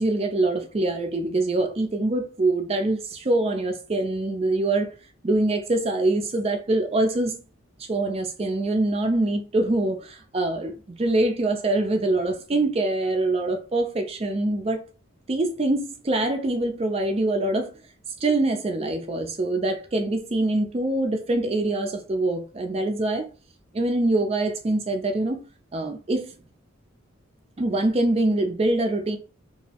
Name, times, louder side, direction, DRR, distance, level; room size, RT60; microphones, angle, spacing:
voice 1, 0.0-4.9 5.2-7.4 7.9-14.8 15.3-17.7 18.2-23.3 23.7-25.4 25.7-26.3 27.6-29.2, right 2 dB, 30° right, 0.4 m, -24 dB
2.6 x 2.0 x 2.8 m
head